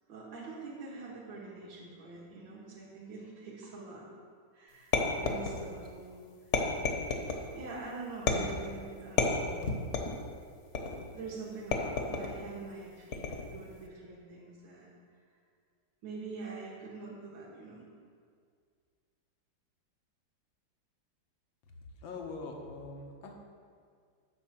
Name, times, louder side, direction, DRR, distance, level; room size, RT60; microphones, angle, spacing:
voice 1, 0.1-4.1 4.5-4.9 5.2-6.3 7.5-9.7 11.1-13.3 13.5-14.9 16.0-17.8, right 3 dB, 70° right, -5 dB, 2.4 m, -45 dB
sound 1, 4.9-5.9 6.5-7.4 8.3-8.7 9.2-10.2 10.7-11.1 11.7-12.4 13.1-13.6, left 4 dB, 45° left, 1.2 m, -31 dB
voice 2, 22.0-23.3, left 3 dB, 80° left, 2 dB, 1.9 m, -42 dB
10.0 x 5.6 x 7.3 m, 2.1 s
omnidirectional pair, 2.1 m